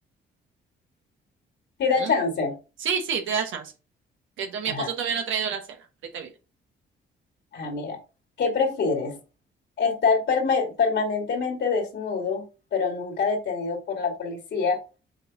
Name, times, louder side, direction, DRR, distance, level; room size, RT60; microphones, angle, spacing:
voice 1, 1.8-2.5 4.6-4.9 7.5-8.0 8.4-9.2 9.8-12.4 12.7-14.8, left 5 dB, 65° left, 2 dB, 2.5 m, -25 dB
voice 2, 2.8-3.7 4.4-5.6 6.1-6.3, right 7 dB, 80° right, 4 dB, 1.2 m, -28 dB
6.5 x 4.3 x 3.7 m, 0.31 s
cardioid pair, 90°, 20 cm